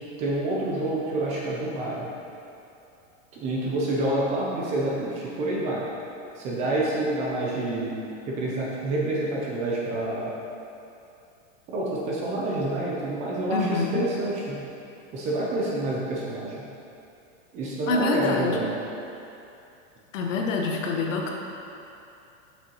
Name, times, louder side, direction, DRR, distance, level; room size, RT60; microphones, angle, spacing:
voice 1, 0.2-2.1 3.3-5.8 6.4-8.0 8.3-10.3 11.7-14.6 15.1-16.7 17.5-18.8, right 2 dB, 20° right, -5 dB, 0.5 m, -28 dB
voice 2, 13.5-14.0 17.9-18.6 20.1-21.3, left 3 dB, 70° left, 0 dB, 1.1 m, -26 dB
6.7 x 6.2 x 3.0 m, 2.8 s
supercardioid pair, 160°, 39 cm